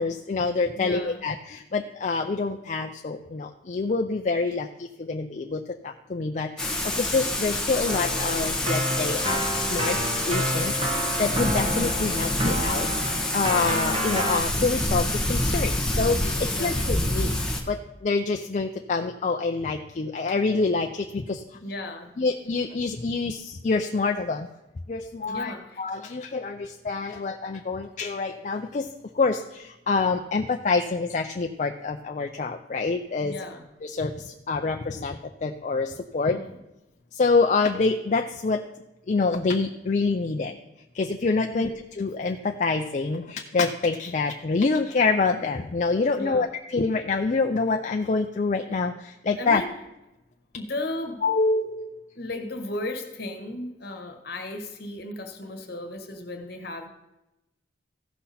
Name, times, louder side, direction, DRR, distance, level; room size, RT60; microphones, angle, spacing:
voice 1, 0.0-10.0 10.3-12.9 13.3-17.4 17.7-21.4 22.2-24.5 24.9-28.9 29.1-33.4 33.8-36.4 37.1-38.6 39.1-40.6 40.9-49.6 51.2-52.0, left 4 dB, 40° left, 5 dB, 0.4 m, -26 dB
voice 2, 0.8-1.2 16.5-16.8 21.6-22.2 25.3-25.8 33.2-33.7 36.3-36.6 41.5-41.7 46.1-46.5 49.4-49.7 50.5-51.2 52.1-56.9, left 1 dB, 55° left, 5 dB, 1.4 m, -35 dB
Thunder / Rain, 6.6-17.6, left 1 dB, 5° left, 1.1 m, -27 dB
Keyboard (musical), 7.8-14.4, right 1 dB, 30° right, 1.3 m, -30 dB
15.0 x 5.9 x 4.2 m, 0.96 s
head